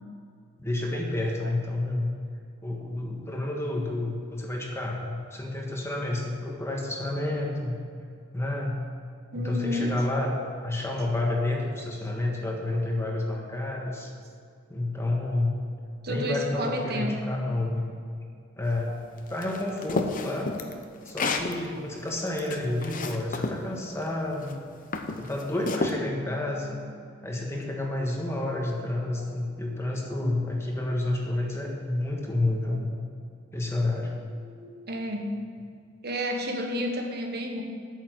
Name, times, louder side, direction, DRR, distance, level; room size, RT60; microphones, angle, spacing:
voice 1, 0.6-2.1 2.6-7.8 8.3-8.8 9.3-10.4 10.6-14.1 14.7-15.6 16.1-17.9 18.6-19.0 19.3-20.5 21.0-24.5 25.2-26.8 27.2-32.8 33.5-34.2, left 2 dB, 15° left, -1 dB, 1.5 m, -29 dB
voice 2, 9.3-9.9 10.2-10.4 11.4-11.5 15.2-15.4 16.0-17.2 18.9-19.0 22.7-22.8 25.8-26.9 30.1-30.2 32.6-32.8 34.3-35.3 36.0-37.6, equal, 55° right, 2 dB, 1.3 m, -33 dB
sound 1, 19.4-21.5 22.1-23.6 24.3-24.5 24.9-26.0, left 3 dB, 45° left, 0.8 m, -30 dB
8.8 x 7.0 x 8.1 m, 2.3 s
head